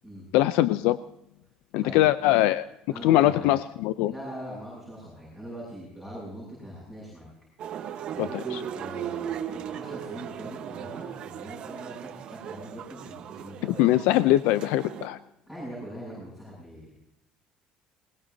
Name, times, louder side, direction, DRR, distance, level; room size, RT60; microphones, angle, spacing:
voice 1, 0.3-1.0 1.7-2.6 3.0-4.1 8.2-8.6 13.6-15.2, left 15 dB, 85° left, 13 dB, 0.5 m, -22 dB
voice 2, 2.9-3.5 4.0-7.3 8.1-14.0 15.5-17.0, equal, 10° left, -5 dB, 7.7 m, -41 dB
sound 1, 7.6-15.1, right 9 dB, 45° right, 1.2 m, -37 dB
21.5 x 19.5 x 2.8 m, 0.84 s
cardioid pair, 160°, 2 cm